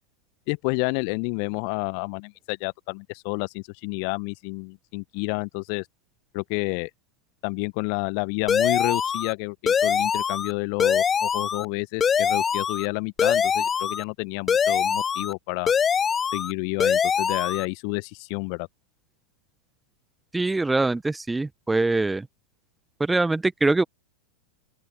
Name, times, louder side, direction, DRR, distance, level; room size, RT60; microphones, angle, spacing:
voice 1, 0.5-5.8 6.3-6.9 7.4-15.7 16.3-18.7, left 40 dB or more, 45° left, 1.3 m, -29 dB
sound 1, 8.5-9.3 9.7-10.5 10.8-11.6 12.0-12.9 13.2-14.0 14.5-15.3 15.7-16.5 16.8-17.6, left 7 dB, 20° left, 0.4 m, -23 dB
voice 2, 20.3-22.3 23.0-23.8, right 2 dB, 10° right, 1.2 m, -23 dB
open air
figure-of-eight pair, 90°, 0 cm